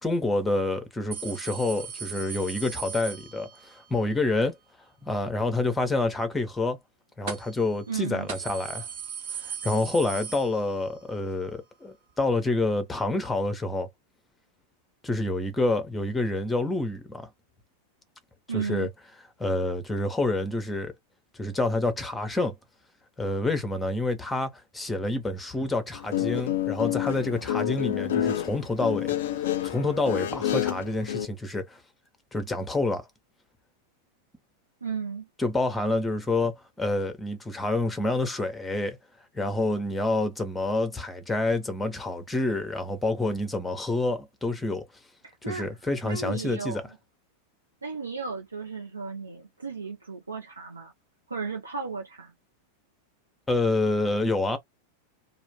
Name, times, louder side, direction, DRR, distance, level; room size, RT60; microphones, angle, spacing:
voice 1, 0.0-4.6 5.0-6.8 7.2-8.9 9.4-13.9 15.0-17.3 18.5-18.9 19.4-20.9 21.3-22.5 23.2-31.8 32.3-33.1 35.4-39.0 39.3-44.8 45.4-46.8 53.5-54.6, left 2 dB, 10° left, 0.7 m, -28 dB
sound 1, 1.1-3.8 7.3-7.7 8.0-8.1 8.3-11.0 11.3-11.4 12.5-12.6, right 7 dB, 50° right, 1.0 m, -38 dB
voice 2, 7.9-8.3 18.5-18.9 34.8-35.3 45.2-45.7 46.0-46.8 47.8-50.9 51.3-52.3, right 5 dB, 75° right, 0.6 m, -34 dB
Guitar, 25.9-31.3, left 11 dB, 60° left, 0.3 m, -29 dB
2.4 x 2.1 x 3.3 m
figure-of-eight pair, 90°, 0 cm